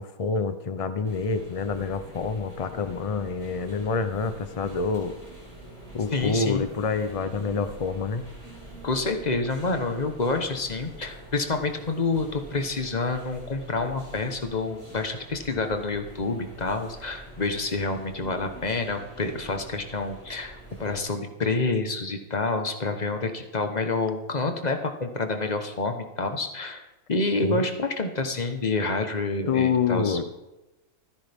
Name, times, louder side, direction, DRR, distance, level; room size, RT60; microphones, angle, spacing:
voice 1, 0.0-5.2 5.9-8.2 27.4-27.7 29.5-30.3, left 5 dB, 55° left, 10 dB, 0.3 m, -27 dB
sound 1, 1.0-21.0, right 1 dB, 50° right, 5.5 m, -45 dB
voice 2, 6.1-6.6 8.8-26.8 27.1-30.2, left 3 dB, 30° left, 6 dB, 1.2 m, -28 dB
25.0 x 10.0 x 3.6 m, 1.0 s
omnidirectional pair, 1.5 m